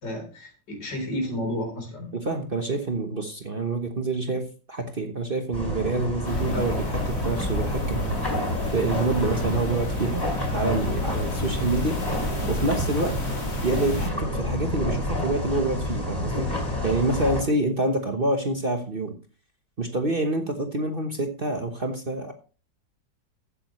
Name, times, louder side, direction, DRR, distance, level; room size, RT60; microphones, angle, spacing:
voice 1, 0.0-2.1, left 1 dB, 75° left, 3 dB, 4.6 m, -31 dB
voice 2, 2.1-4.4 4.7-8.2 8.7-10.2 10.5-12.0 12.5-13.2 13.6-16.5 16.8-19.1 19.8-22.3, right 2 dB, 35° right, 5 dB, 1.2 m, -27 dB
sound 1, 5.5-17.4, left 1 dB, 10° left, 4.7 m, -29 dB
sound 2, 6.2-14.1, left 2 dB, 35° left, 2.5 m, -32 dB
14.5 x 8.7 x 3.2 m, 0.35 s
omnidirectional pair, 1.9 m